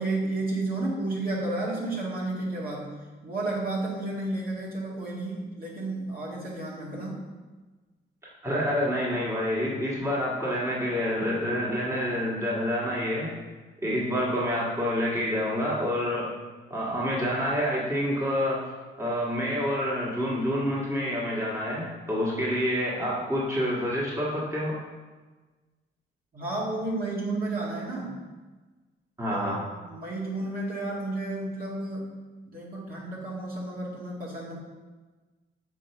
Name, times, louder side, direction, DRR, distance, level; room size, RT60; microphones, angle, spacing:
voice 1, 0.0-2.9 3.2-7.3 26.3-28.2 29.3-29.6 29.8-32.1 32.5-34.6, right 2 dB, 50° right, -4 dB, 2.0 m, -32 dB
voice 2, 8.4-13.3 13.8-16.3 16.7-18.7 19.0-24.7 29.2-29.6, equal, 15° right, -5 dB, 1.7 m, -27 dB
6.5 x 4.4 x 4.5 m, 1.3 s
cardioid pair, 90°, 20 cm